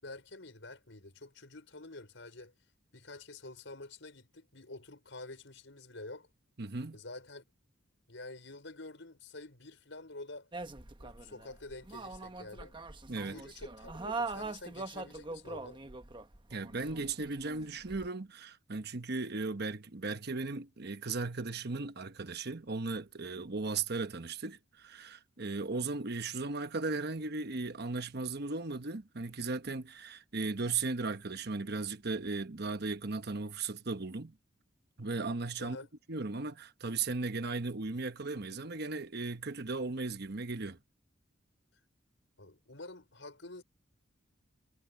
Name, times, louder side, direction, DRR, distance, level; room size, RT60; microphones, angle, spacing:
voice 1, 0.0-2.5 2.9-6.3 6.9-7.4 8.1-10.5 11.0-12.7 13.2-15.8 35.6-35.9 42.4-43.6, left 2 dB, 70° left, 5.8 m, -48 dB
voice 2, 6.6-7.0 13.1-13.4 16.5-34.3 35.0-35.8 36.1-40.8, right 3 dB, 55° right, 1.1 m, -36 dB
sound 1, 10.5-18.1, right 3 dB, 25° right, 1.1 m, -42 dB
head